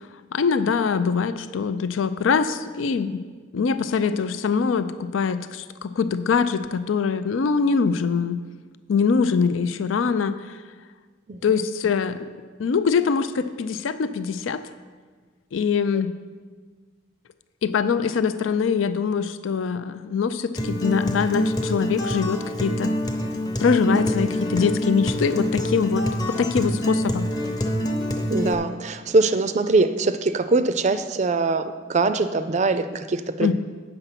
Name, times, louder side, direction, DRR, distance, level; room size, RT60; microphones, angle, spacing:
voice 1, 0.3-3.2 3.5-8.4 8.9-10.6 11.4-12.3 12.6-14.6 15.5-16.1 17.6-22.9 23.6-27.3 33.4-33.5, left 5 dB, 85° left, 12 dB, 0.4 m, -23 dB
Acoustic guitar, 20.6-28.5, equal, 20° left, 0.8 m, -26 dB
voice 2, 28.3-33.5, right 3 dB, 35° right, 11 dB, 0.4 m, -22 dB
8.9 x 6.8 x 5.8 m, 1.5 s
head